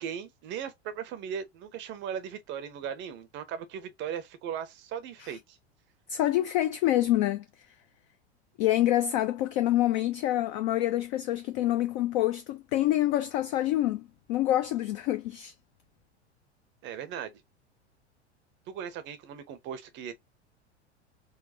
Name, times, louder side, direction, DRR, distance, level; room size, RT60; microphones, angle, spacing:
voice 1, 0.0-5.6 16.8-17.3 18.7-20.1, right 8 dB, 35° right, 0.6 m, -38 dB
voice 2, 6.1-7.4 8.6-15.5, left 14 dB, 45° left, 0.4 m, -26 dB
4.0 x 2.1 x 2.6 m
figure-of-eight pair, 90°, 34 cm